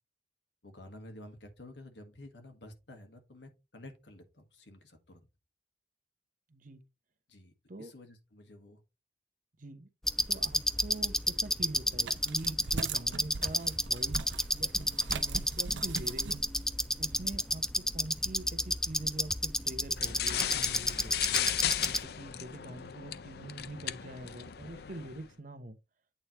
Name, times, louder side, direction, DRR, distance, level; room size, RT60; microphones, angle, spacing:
voice 1, 0.6-5.3 7.3-7.5 7.8-8.8, left 1 dB, 80° left, 1.7 m, -51 dB
voice 2, 6.5-6.8 7.7-7.9 9.6-9.9 10.3-14.3 14.5-16.3 17.0-21.2 21.8-25.8, right 1 dB, 50° right, 0.9 m, -44 dB
sound 1, 10.0-22.0, left 1 dB, 5° left, 0.4 m, -32 dB
sound 2, 12.0-17.3, right 4 dB, 85° right, 0.7 m, -40 dB
sound 3, 20.0-25.3, left 11 dB, 60° left, 0.5 m, -35 dB
8.8 x 3.4 x 4.3 m
head